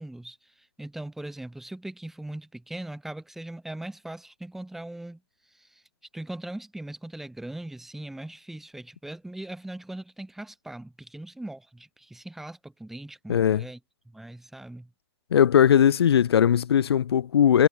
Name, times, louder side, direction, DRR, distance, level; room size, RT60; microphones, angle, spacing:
voice 1, 0.0-5.2 5.5-5.8 6.1-13.8 14.1-14.9, right 1 dB, ahead, 7.6 m, -40 dB
voice 2, 13.3-13.6 15.3-17.7, left 9 dB, 65° left, 2.2 m, -19 dB
hypercardioid pair, 170°, 14 cm